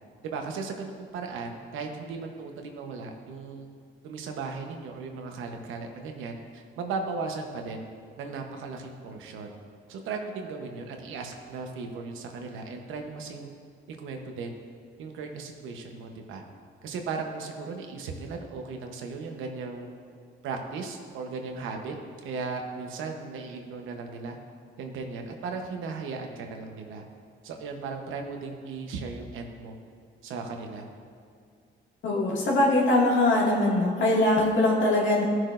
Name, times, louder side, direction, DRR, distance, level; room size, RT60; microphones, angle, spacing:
voice 1, 0.2-3.7 4.0-7.8 8.2-9.5 9.9-13.5 13.9-14.5 15.0-16.4 16.8-19.9 20.4-21.9 22.2-24.4 24.8-27.1 27.4-29.8 30.2-30.9, right 4 dB, 85° right, 3 dB, 1.0 m, -36 dB
voice 2, 32.0-35.2, left 1 dB, 70° left, -4 dB, 2.1 m, -22 dB
14.0 x 6.1 x 2.5 m, 2.3 s
cardioid pair, 90°, 20 cm